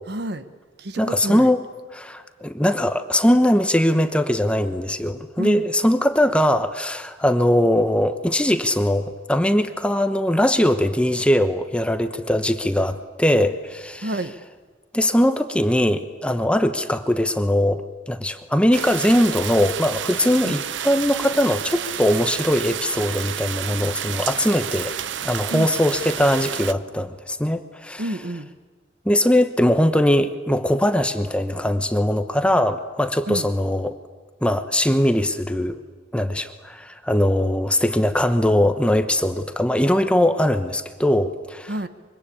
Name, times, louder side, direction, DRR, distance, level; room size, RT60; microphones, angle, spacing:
voice 1, 0.1-0.4 0.8-1.5 5.4-5.7 14.0-14.3 20.4-20.6 25.5-25.7 28.0-28.5 33.3-33.5 41.7-41.9, right 1 dB, 60° right, 11 dB, 1.2 m, -29 dB
voice 2, 1.0-1.6 1.9-14.1 14.9-24.9 25.2-28.0 29.0-34.0 34.4-35.8 36.1-41.7, left 1 dB, 5° left, 9 dB, 0.9 m, -21 dB
sound 1, 18.7-26.7, right 9 dB, 75° right, 0.7 m, -30 dB
25.0 x 24.0 x 8.6 m, 1.5 s
head